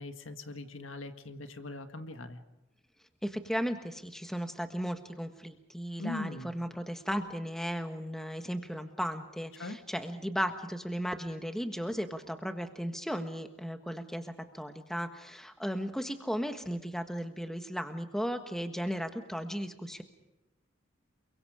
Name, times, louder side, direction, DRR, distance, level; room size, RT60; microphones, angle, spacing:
voice 1, 0.0-2.4 6.0-6.5 9.6-9.8, left 2 dB, 85° left, 8 dB, 1.8 m, -40 dB
voice 2, 3.2-20.0, equal, ahead, 7 dB, 1.4 m, -36 dB
29.0 x 23.0 x 5.0 m, 0.97 s
head